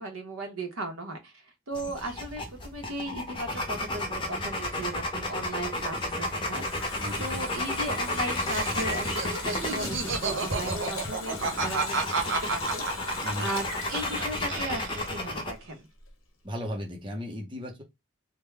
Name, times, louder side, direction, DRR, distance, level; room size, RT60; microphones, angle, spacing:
voice 1, 0.0-1.3 1.7-6.6 7.2-12.8 13.4-15.9, right 1 dB, 85° right, 1.0 m, -36 dB
sound 1, 1.7-15.5, left 1 dB, 25° left, 0.6 m, -33 dB
Water tap faucet, 6.1-15.7 16.0-16.1, left 4 dB, 80° left, 1.0 m, -40 dB
Laughter, 8.4-14.2 14.5-15.3, right 4 dB, 60° right, 0.7 m, -31 dB
voice 2, 16.4-17.8, equal, 25° right, 0.7 m, -35 dB
3.4 x 2.2 x 3.3 m
head